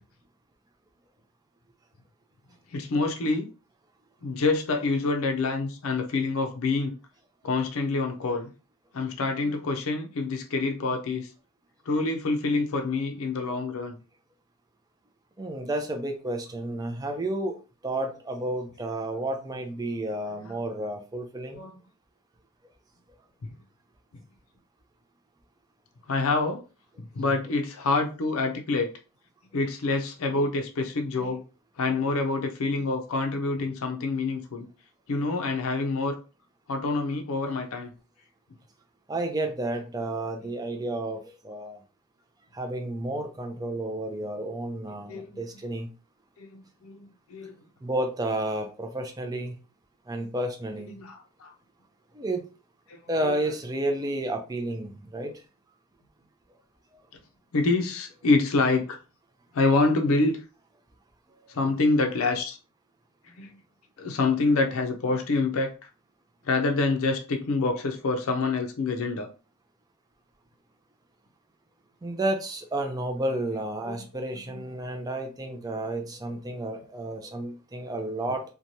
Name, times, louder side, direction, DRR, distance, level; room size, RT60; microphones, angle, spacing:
voice 1, 2.7-3.5 4.2-6.9 7.4-8.5 8.9-11.3 11.9-14.0 20.5-20.6 21.5-21.7 26.1-26.6 27.2-28.9 29.5-31.4 31.8-34.7 35.1-36.2 36.7-37.9 45.1-45.4 46.4-47.5 50.9-51.5 52.9-53.0 57.5-59.0 59.5-60.4 61.5-62.6 63.4-63.5 64.0-65.7 66.5-69.3 73.8-74.0, left 3 dB, 65° left, 4 dB, 0.5 m, -26 dB
voice 2, 15.4-17.6 17.8-21.6 39.1-41.8 42.5-45.9 47.8-49.6 50.1-50.9 52.1-52.5 53.1-55.4 72.0-78.4, right 1 dB, 15° right, 4 dB, 0.4 m, -31 dB
2.9 x 2.2 x 2.6 m, 0.33 s
head